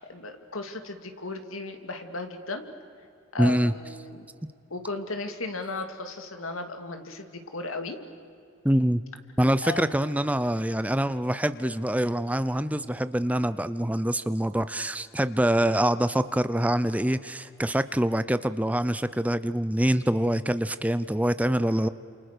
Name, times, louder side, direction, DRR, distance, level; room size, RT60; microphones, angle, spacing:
voice 1, 0.0-2.6 3.3-4.3 4.7-7.3 7.5-8.0 9.6-9.9, left 3 dB, 90° left, 6 dB, 2.7 m, -35 dB
voice 2, 3.4-3.7 8.6-9.0 9.4-21.9, right 1 dB, 5° right, 13 dB, 0.6 m, -25 dB
29.5 x 28.0 x 6.8 m, 2.5 s
head